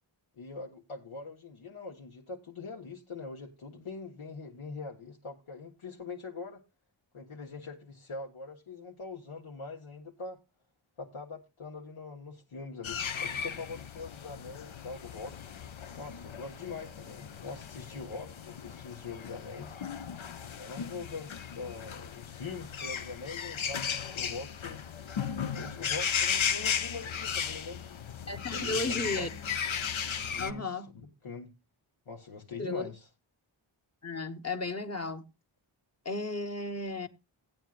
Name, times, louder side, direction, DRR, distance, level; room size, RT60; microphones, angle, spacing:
voice 1, 0.4-6.6 7.1-10.4 11.0-15.5 15.9-19.8 20.6-24.8 25.5-27.8 28.5-29.3 30.3-31.5 32.1-33.1, left 4 dB, 85° left, 1.5 m, -43 dB
sound 1, 12.8-30.5, left 7 dB, 70° left, 0.8 m, -36 dB
voice 2, 28.3-29.3 29.7-29.8 30.4-30.9 32.6-32.9 34.0-35.3 36.0-37.1, left 2 dB, 30° left, 1.1 m, -34 dB
17.0 x 9.1 x 2.5 m
wide cardioid pair, 90°, 49 cm